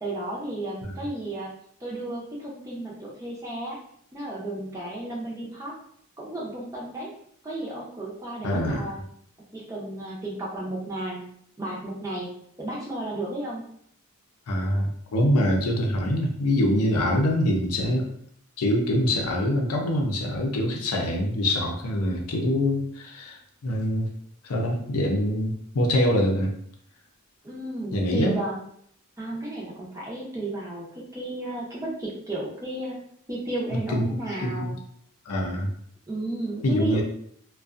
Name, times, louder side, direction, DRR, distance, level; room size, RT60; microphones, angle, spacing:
voice 1, 0.0-3.8 4.1-5.7 6.2-7.1 7.4-9.0 9.5-11.3 11.6-12.3 12.6-13.6 27.4-28.6 29.2-33.0 33.3-34.8 36.1-37.0, right 1 dB, 15° right, -4 dB, 0.5 m, -33 dB
voice 2, 8.4-8.9 14.5-18.1 18.6-24.1 24.4-26.5 27.9-28.4 33.7-34.8 35.3-35.7 36.6-37.0, left 1 dB, 80° left, 1 dB, 0.5 m, -24 dB
2.5 x 2.2 x 2.4 m, 0.66 s
head